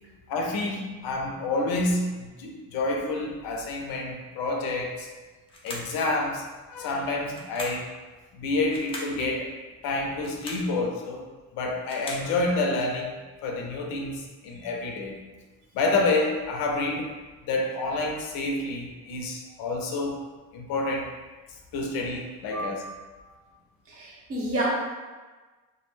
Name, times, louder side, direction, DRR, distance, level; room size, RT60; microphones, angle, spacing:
voice 1, 0.3-5.1 5.6-6.4 6.7-7.9 8.3-9.5 9.8-11.2 11.5-13.1 13.4-15.2 15.7-17.1 17.5-20.2 20.5-21.1 21.7-22.8, left 2 dB, 75° left, 1 dB, 0.6 m, -28 dB
sound 1, 5.5-6.0 7.3-7.9 8.7-9.2 10.1-10.7 11.6-12.3, left 1 dB, 15° left, 0.3 m, -39 dB
voice 2, 22.5-23.3 23.9-24.7, right 1 dB, 40° right, -4 dB, 0.7 m, -31 dB
2.3 x 2.2 x 3.2 m, 1.3 s
cardioid pair, 135°, 36 cm